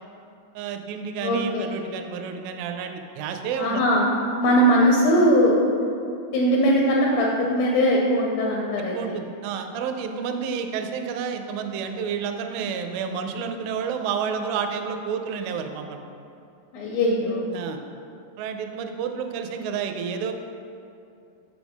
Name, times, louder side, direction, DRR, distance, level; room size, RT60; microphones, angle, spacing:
voice 1, 0.6-3.8 8.9-16.0 17.5-17.8 18.4-20.3, right 6 dB, 85° right, 6 dB, 2.3 m, -30 dB
voice 2, 1.2-1.7 3.6-4.1 4.4-5.6 6.3-9.0 16.7-17.4, equal, 80° left, -2 dB, 2.5 m, -20 dB
6.6 x 6.1 x 3.5 m, 2.6 s
omnidirectional pair, 4.2 m